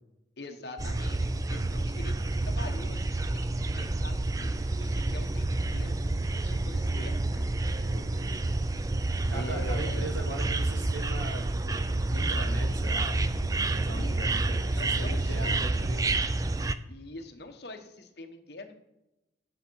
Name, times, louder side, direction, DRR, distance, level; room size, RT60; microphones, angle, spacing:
voice 1, 0.4-7.5 9.3-10.1 13.9-15.8 16.9-18.7, left 2 dB, 60° left, 5 dB, 1.2 m, -44 dB
sound 1, 0.8-16.7, right 2 dB, 20° right, 0.3 m, -29 dB
voice 2, 7.8-8.4 9.3-16.1, right 2 dB, 85° right, 1 dB, 2.4 m, -40 dB
10.0 x 7.2 x 4.7 m, 0.97 s
head